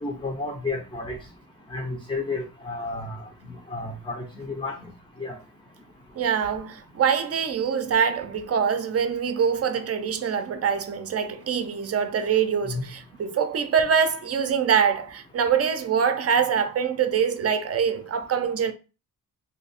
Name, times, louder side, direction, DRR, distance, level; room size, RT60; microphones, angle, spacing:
voice 1, 0.0-1.2 1.7-3.2 3.7-4.2 4.6-4.7 5.2-5.3 12.7-12.8, left 3 dB, 15° left, 0.5 m, -31 dB
voice 2, 6.2-18.7, right 7 dB, 45° right, 0.5 m, -24 dB
2.7 x 2.4 x 4.1 m
wide cardioid pair, 145°, 35 cm